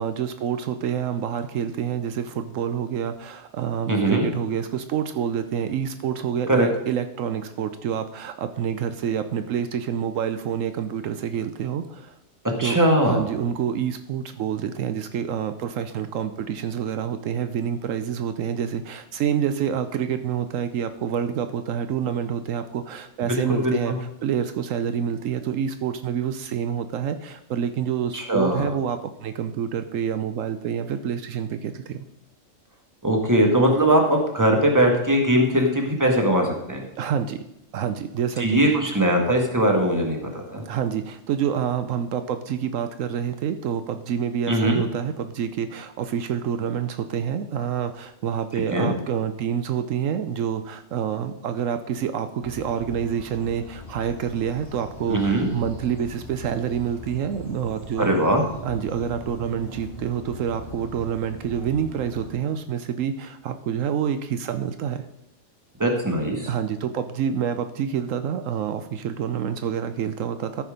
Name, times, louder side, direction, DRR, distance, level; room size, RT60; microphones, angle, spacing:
voice 1, 0.0-12.1 12.6-12.8 13.1-32.1 37.0-37.4 37.7-38.8 40.7-58.1 58.6-65.0 66.5-70.6, right 8 dB, 80° right, 10 dB, 1.0 m, -27 dB
voice 2, 3.9-4.3 6.5-6.7 12.6-13.3 23.3-24.0 28.1-28.7 33.0-36.8 38.4-40.2 40.5-40.6 44.5-44.8 48.7-48.9 55.1-55.5 58.0-58.4 65.8-66.5, right 1 dB, 15° right, 2 dB, 1.7 m, -20 dB
sound 1, 52.4-62.3, left 1 dB, 25° left, 2.2 m, -41 dB
14.0 x 6.0 x 5.1 m, 0.83 s
omnidirectional pair, 1.3 m